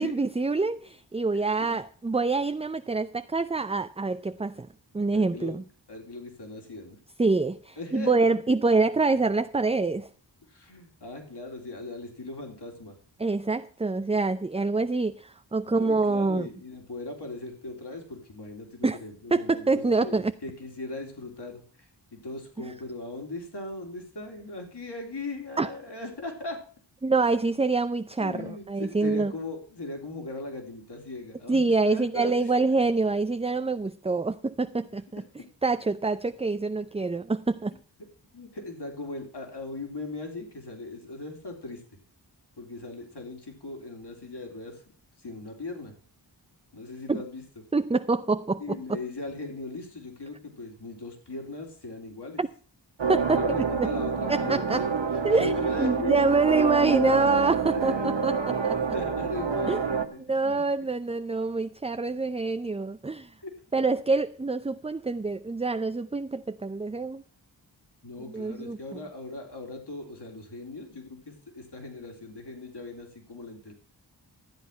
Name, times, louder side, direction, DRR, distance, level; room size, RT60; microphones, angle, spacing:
voice 1, 0.0-4.7 4.9-5.6 7.2-10.1 13.2-16.5 18.8-19.0 19.3-20.3 25.6-25.7 27.0-29.3 31.5-35.2 35.6-37.7 47.1-47.2 47.7-48.8 52.4-52.5 53.1-53.4 53.8-53.9 54.3-54.8 55.2-55.5 55.8-57.9 58.2-58.3 58.6-58.8 59.7-59.8 60.3-63.3 63.7-67.2 68.3-68.8, right 3 dB, 15° right, 0.5 m, -26 dB
voice 2, 5.1-5.5 5.9-7.0 7.8-8.1 10.4-13.0 15.7-26.6 28.2-32.5 38.3-41.8 42.6-44.8 45.2-45.9 46.7-47.4 48.6-52.4 53.3-56.3 57.6-58.1 58.8-60.9 63.4-63.5 68.0-73.7, left 2 dB, 60° left, 3.7 m, -39 dB
sound 1, 53.0-60.1, right 6 dB, 70° right, 1.6 m, -27 dB
13.5 x 8.3 x 5.6 m
cardioid pair, 40°, 46 cm